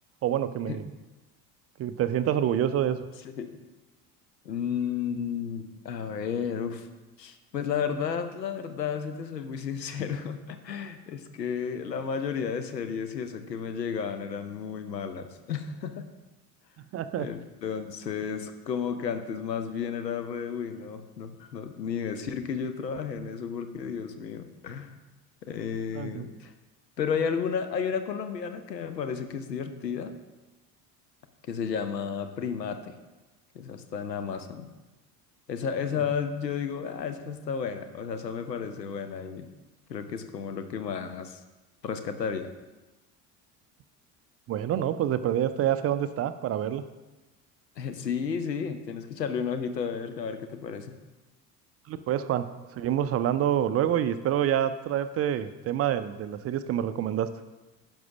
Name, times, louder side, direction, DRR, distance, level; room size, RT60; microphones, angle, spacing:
voice 1, 0.2-0.9 1.8-3.1 16.9-17.3 25.9-26.3 44.5-46.8 51.9-52.5 52.7-57.3, right 10 dB, 30° right, 12 dB, 0.5 m, -27 dB
voice 2, 4.4-6.9 7.2-16.1 17.2-24.9 25.4-26.5 27.0-30.1 31.4-33.0 33.5-34.7 35.5-39.5 39.9-41.4 41.8-42.5 47.8-50.9, left 7 dB, 85° left, 8 dB, 0.9 m, -32 dB
11.0 x 5.4 x 6.0 m, 1.1 s
figure-of-eight pair, 65°, 48 cm